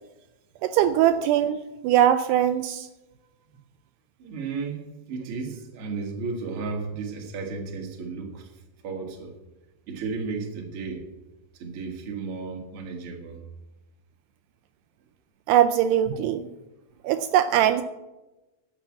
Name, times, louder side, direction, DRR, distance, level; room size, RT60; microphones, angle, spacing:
voice 1, 0.6-2.9 15.5-16.4 17.0-17.8, right 11 dB, 80° right, 10 dB, 2.6 m, -21 dB
voice 2, 4.2-8.5 8.8-9.3 9.9-11.0 11.5-13.4, right 4 dB, 45° right, 1 dB, 2.2 m, -34 dB
11.5 x 7.4 x 8.7 m, 1.0 s
omnidirectional pair, 4.8 m